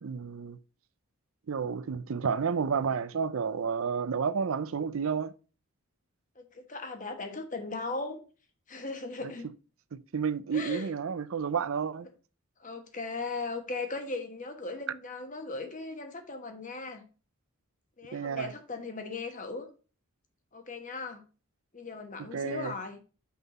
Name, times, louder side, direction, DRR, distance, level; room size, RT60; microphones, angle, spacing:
voice 1, 0.0-0.6 1.5-5.3 9.9-12.1 18.1-18.5 22.3-22.7, right 6 dB, 70° right, 0.5 m, -31 dB
voice 2, 6.4-8.2 8.7-9.5 10.5-10.9 12.6-17.0 18.0-19.7 20.5-21.2 21.7-23.0, left 3 dB, 35° left, 1.2 m, -38 dB
5.9 x 5.5 x 4.1 m
head